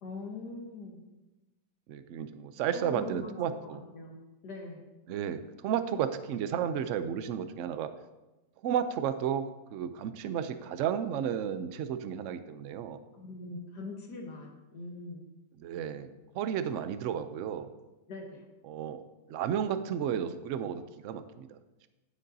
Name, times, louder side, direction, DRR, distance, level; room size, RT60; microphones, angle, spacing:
voice 1, 0.0-1.0 2.7-4.2 4.4-4.8 13.1-15.2 18.1-18.4, left 3 dB, 70° left, 1 dB, 1.7 m, -42 dB
voice 2, 1.9-3.8 5.1-7.9 8.6-13.0 15.6-16.1 16.3-17.7 18.6-19.0 19.3-21.6, right 8 dB, 80° right, 10 dB, 0.6 m, -33 dB
9.8 x 9.1 x 2.7 m, 1.1 s
omnidirectional pair, 1.9 m